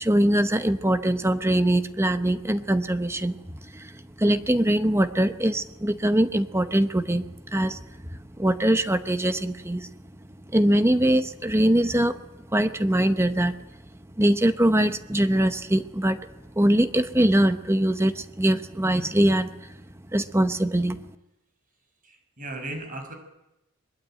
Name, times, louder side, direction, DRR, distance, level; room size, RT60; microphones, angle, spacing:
voice 1, 0.0-9.9 10.5-12.2 12.5-13.7 14.2-16.2 16.6-19.5 20.1-21.0, right 1 dB, 10° right, 10 dB, 0.8 m, -22 dB
voice 2, 22.0-23.1, right 2 dB, 35° right, 6 dB, 6.0 m, -36 dB
22.5 x 22.0 x 9.0 m, 0.93 s
head